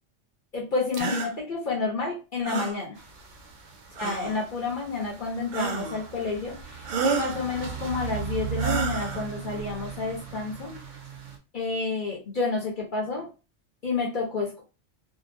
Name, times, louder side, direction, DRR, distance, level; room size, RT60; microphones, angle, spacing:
voice 1, 0.5-3.0 4.0-10.7 11.5-13.3 13.8-14.6, left 4 dB, 50° left, -1 dB, 0.8 m, -30 dB
sound 1, 0.9-1.3 2.4-2.8 3.9-4.4 5.5-6.0 6.8-7.4 8.6-9.2, right 6 dB, 60° right, 0.5 m, -30 dB
sound 2, 3.0-11.4, right 8 dB, 85° right, 1.0 m, -37 dB
2.7 x 2.6 x 2.6 m, 0.32 s
omnidirectional pair, 1.2 m